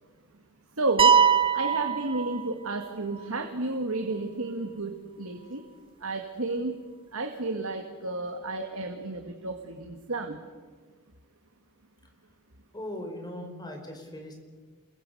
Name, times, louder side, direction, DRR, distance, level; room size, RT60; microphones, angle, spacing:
voice 1, 0.8-1.2 1.5-5.6 6.0-6.8 7.1-10.4, right 2 dB, 80° right, 4 dB, 2.0 m, -32 dB
sound 1, 1.0-2.9, right 7 dB, 25° right, 0.7 m, -22 dB
voice 2, 12.7-14.4, left 1 dB, 20° left, 3 dB, 4.9 m, -39 dB
28.5 x 22.5 x 6.9 m, 1.5 s
head